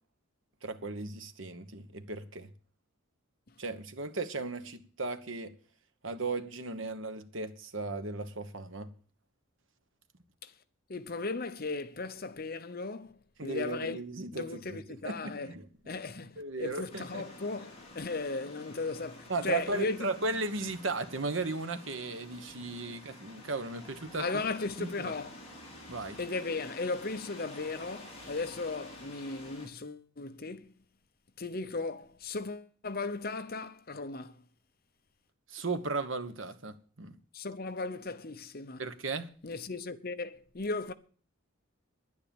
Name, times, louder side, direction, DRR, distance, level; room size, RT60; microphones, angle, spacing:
voice 1, 0.6-2.5 3.6-5.5 6.0-8.9 13.4-15.6 16.4-17.2 19.3-24.2 24.8-25.1 25.9-26.2 35.5-37.2 38.8-39.3, right 3 dB, 70° right, 1.2 m, -36 dB
voice 2, 10.9-14.0 14.3-15.5 15.9-20.1 24.2-25.4 26.2-30.7 31.4-34.4 37.3-38.8 39.4-40.9, left 3 dB, 45° left, 0.8 m, -36 dB
sound 1, 16.9-29.7, left 1 dB, 30° left, 4.0 m, -50 dB
11.0 x 9.8 x 7.1 m
head